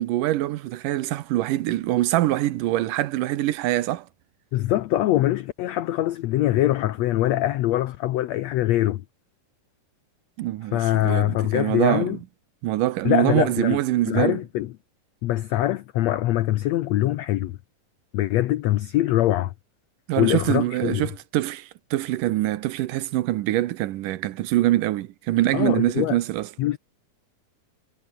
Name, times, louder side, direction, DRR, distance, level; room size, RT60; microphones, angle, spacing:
voice 1, 0.0-4.1 10.4-12.2 12.6-14.4 20.1-26.5, right 15 dB, 75° right, 2.4 m, -24 dB
voice 2, 4.5-9.0 10.7-12.2 13.0-13.8 14.1-14.7 15.2-17.6 18.1-19.5 20.2-21.0 25.5-26.2 26.6-26.8, left 14 dB, 85° left, 1.5 m, -23 dB
omnidirectional pair, 4.0 m